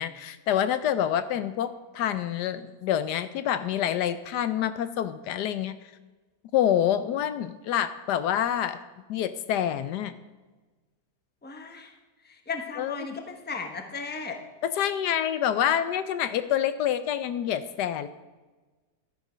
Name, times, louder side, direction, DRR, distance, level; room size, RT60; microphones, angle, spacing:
voice 1, 0.0-5.7 6.5-8.8 9.1-10.1 12.8-13.0 14.6-18.1, left 10 dB, 75° left, 13 dB, 1.2 m, -27 dB
voice 2, 11.4-11.9 12.2-14.4, left 4 dB, 5° left, 4 dB, 0.9 m, -36 dB
12.0 x 10.0 x 5.0 m, 1.2 s
omnidirectional pair, 1.8 m